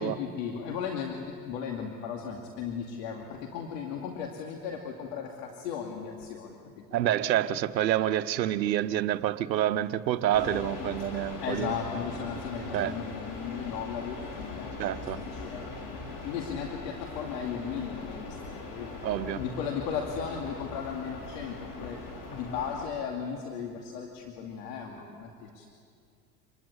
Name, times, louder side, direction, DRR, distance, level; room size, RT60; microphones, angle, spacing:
voice 1, 0.0-6.8 11.4-16.0 16.2-18.9 19.3-22.0 22.3-25.7, left 7 dB, 75° left, 2.6 m, -36 dB
voice 2, 6.9-11.7 12.7-12.9 14.8-15.2 19.0-19.4, right 12 dB, 90° right, 1.0 m, -28 dB
sound 1, 10.3-22.9, left 3 dB, 50° left, 5.8 m, -40 dB
26.5 x 21.0 x 9.8 m
hypercardioid pair, 80°, 50 cm